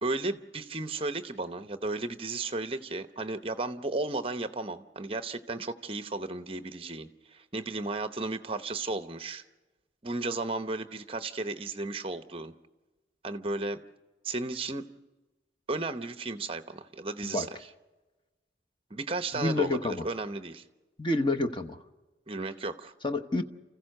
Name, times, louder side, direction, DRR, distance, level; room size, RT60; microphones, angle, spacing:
voice 1, 0.0-9.4 10.0-12.5 13.2-13.8 14.2-14.9 15.7-17.5 18.9-20.6 22.3-22.9, right 2 dB, 30° right, 10 dB, 0.8 m, -34 dB
voice 2, 19.3-20.0 21.0-21.8 23.0-23.4, left 2 dB, 25° left, 8 dB, 0.9 m, -28 dB
29.0 x 15.5 x 6.6 m, 1.2 s
head